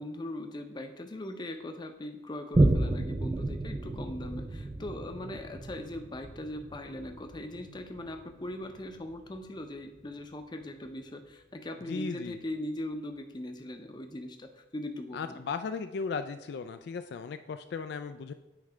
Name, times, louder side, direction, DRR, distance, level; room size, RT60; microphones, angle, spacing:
voice 1, 0.0-15.4, left 1 dB, 25° left, 6 dB, 0.6 m, -40 dB
Boom, 2.5-9.5 10.0-10.1, right 2 dB, 20° right, 0.3 m, -31 dB
voice 2, 11.9-12.4 15.1-18.3, left 5 dB, 60° left, 9 dB, 0.3 m, -36 dB
9.1 x 3.2 x 5.0 m, 0.99 s
head